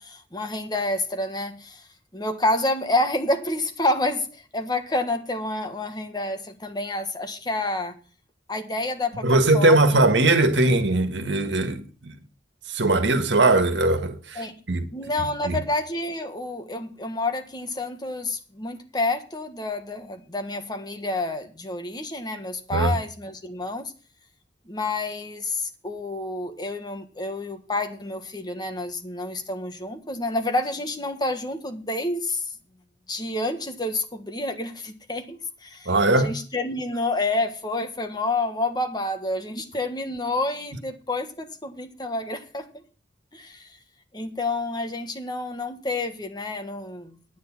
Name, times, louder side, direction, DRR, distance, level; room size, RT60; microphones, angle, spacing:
voice 1, 0.0-1.8 2.1-8.0 8.5-10.0 14.3-14.6 14.9-23.9 24.6-32.5 33.1-42.7 43.3-43.7 44.1-47.2, left 2 dB, 25° left, 1.6 m, -29 dB
voice 2, 9.2-12.1 12.7-14.8 15.4-15.6 22.7-23.0 35.8-36.3, right 2 dB, 85° right, 1.7 m, -20 dB
9.6 x 9.5 x 6.1 m
head